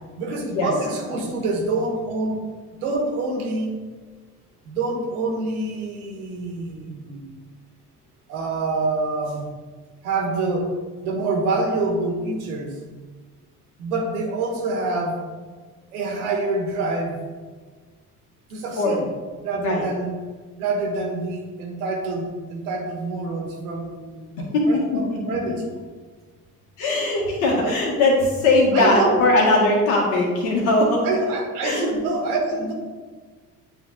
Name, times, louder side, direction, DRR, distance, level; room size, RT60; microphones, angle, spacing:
voice 1, 0.2-2.4 2.8-3.7 4.6-7.4 8.3-9.5 10.0-10.8 11.0-12.8 13.8-15.2 15.9-17.2 18.5-19.1 19.4-20.2 20.6-24.3 24.7-25.5 27.6-27.8 28.7-29.5 31.0-32.7, right 3 dB, 75° right, 1 dB, 1.3 m, -26 dB
voice 2, 26.8-31.1 31.6-31.9, left 2 dB, 70° left, -2 dB, 1.9 m, -19 dB
9.0 x 3.6 x 3.7 m, 1.5 s
hypercardioid pair, 55°, 44 cm